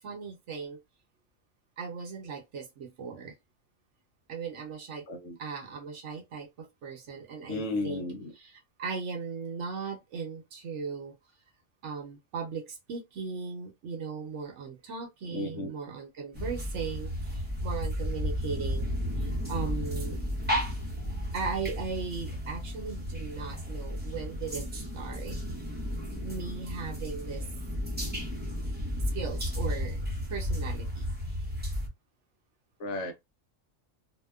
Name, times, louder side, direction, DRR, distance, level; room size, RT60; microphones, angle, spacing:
voice 1, 0.0-0.8 1.8-3.4 4.3-5.0 5.4-8.1 8.4-11.2 11.8-18.9 19.2-20.2 21.3-25.4 26.2-27.5 29.1-30.0 30.3-31.4, right 5 dB, 65° right, 0.9 m, -38 dB
voice 2, 5.1-5.4 7.5-8.3 15.3-15.7 32.8-33.1, left 2 dB, 65° left, 0.8 m, -33 dB
sound 1, 16.3-31.9, equal, 10° right, 0.5 m, -33 dB
2.7 x 2.1 x 2.2 m
omnidirectional pair, 1.4 m